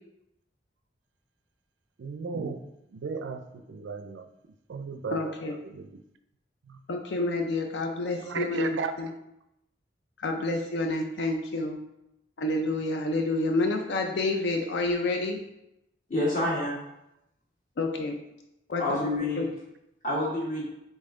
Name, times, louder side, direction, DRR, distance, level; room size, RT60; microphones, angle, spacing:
voice 1, 2.0-2.6 2.9-4.3 4.7-6.0 6.6-6.8 8.2-9.1, right 4 dB, 85° right, 8 dB, 0.4 m, -35 dB
voice 2, 5.1-5.5 6.9-9.1 10.2-11.8 12.4-15.4 17.8-18.2 18.7-19.0 19.4-19.5, left 2 dB, 70° left, 3 dB, 0.4 m, -28 dB
voice 3, 16.1-16.8 18.8-19.5 20.0-20.6, left 1 dB, 45° left, -5 dB, 1.5 m, -28 dB
4.1 x 3.4 x 3.7 m, 0.87 s
head